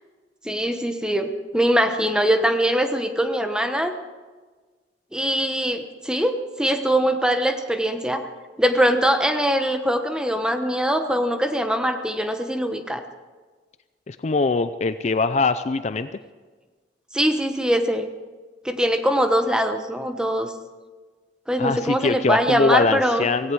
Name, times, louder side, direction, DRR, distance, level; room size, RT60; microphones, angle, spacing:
voice 1, 0.4-3.9 5.1-8.2 8.6-13.0 17.1-18.1 18.6-20.5 21.5-23.3, equal, 5° right, 6 dB, 1.1 m, -22 dB
voice 2, 14.1-16.2 21.6-23.5, left 3 dB, 40° left, 12 dB, 0.4 m, -22 dB
17.5 x 16.5 x 4.7 m, 1.4 s
head